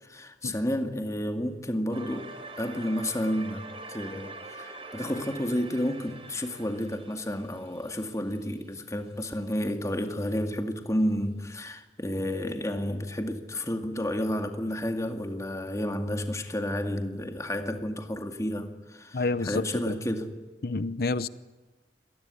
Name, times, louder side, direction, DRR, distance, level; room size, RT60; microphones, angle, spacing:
voice 1, 0.0-2.3 2.6-20.3, equal, 15° left, 2.1 m, -31 dB
sound 1, 1.9-8.8, right 3 dB, 30° right, 4.4 m, -44 dB
voice 2, 19.1-20.0 20.6-21.3, left 3 dB, 55° left, 0.8 m, -29 dB
26.5 x 19.5 x 9.7 m
head